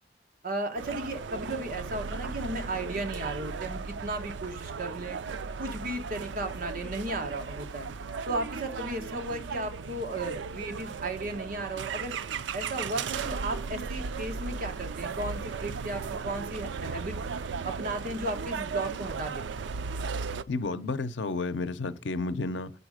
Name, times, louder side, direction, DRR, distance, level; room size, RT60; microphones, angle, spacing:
voice 1, 0.4-5.2 5.6-7.9 8.3-12.2 12.5-17.2 17.6-19.7, right 2 dB, 50° right, 1.1 m, -35 dB
sound 1, 0.8-20.4, right 5 dB, 80° right, 0.4 m, -36 dB
voice 2, 20.5-22.7, left 3 dB, 85° left, 0.6 m, -31 dB
6.9 x 5.0 x 4.9 m
head